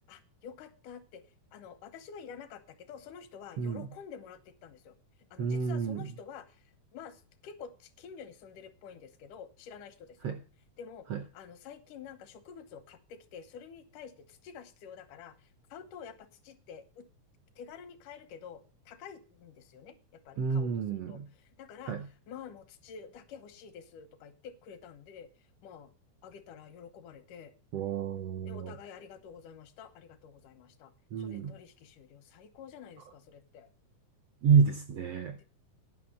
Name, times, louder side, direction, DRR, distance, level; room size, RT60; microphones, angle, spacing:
voice 1, 0.1-5.0 5.3-10.4 10.8-11.1 11.3-17.1 17.6-21.2 21.5-22.0 22.3-25.9 26.2-27.5 28.4-33.7 35.4-35.5, left 7 dB, 80° left, 9 dB, 2.5 m, -49 dB
voice 2, 3.6-3.9 5.4-6.1 10.2-10.4 11.1-11.2 20.4-21.2 21.9-22.1 27.7-28.7 31.1-31.5 34.4-35.4, right 6 dB, 80° right, 8 dB, 1.4 m, -29 dB
10.0 x 5.9 x 7.3 m, 0.37 s
omnidirectional pair, 3.7 m